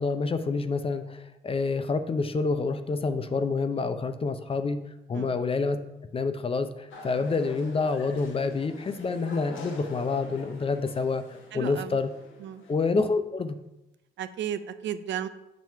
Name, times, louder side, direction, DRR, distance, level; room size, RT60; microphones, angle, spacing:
voice 1, 0.0-4.8 5.1-5.8 6.1-11.2 11.5-12.1 12.7-13.6, left 4 dB, 30° left, 9 dB, 0.5 m, -27 dB
sound 1, 6.9-12.7, left 2 dB, 80° left, 1.0 m, -45 dB
voice 2, 11.5-12.0 12.4-12.6 14.2-15.3, right 9 dB, 70° right, 11 dB, 0.5 m, -34 dB
7.3 x 3.0 x 5.6 m, 0.94 s
cardioid pair, 90°, 20 cm